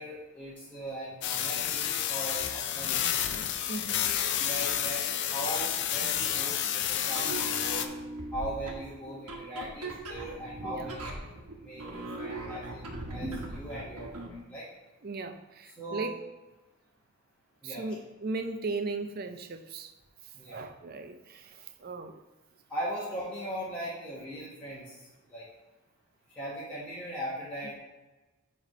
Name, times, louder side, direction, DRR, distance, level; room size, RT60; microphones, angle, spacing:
voice 1, 0.0-3.0 4.1-5.0 5.3-7.9 8.3-11.1 11.6-14.7 15.8-16.1 17.6-17.9 20.3-20.7 22.7-25.0 25.3-25.5 26.4-27.8, equal, 5° left, -10 dB, 1.3 m, -39 dB
sound 1, 1.2-7.9, left 10 dB, 50° left, 0.4 m, -30 dB
voice 2, 3.7-4.1 10.6-10.9 15.0-16.2 17.6-19.9 20.5-22.2, right 3 dB, 40° right, 8 dB, 0.5 m, -37 dB
sound 2, 7.1-14.4, right 2 dB, 85° right, 1.2 m, -40 dB
7.8 x 3.4 x 5.1 m, 1.1 s
head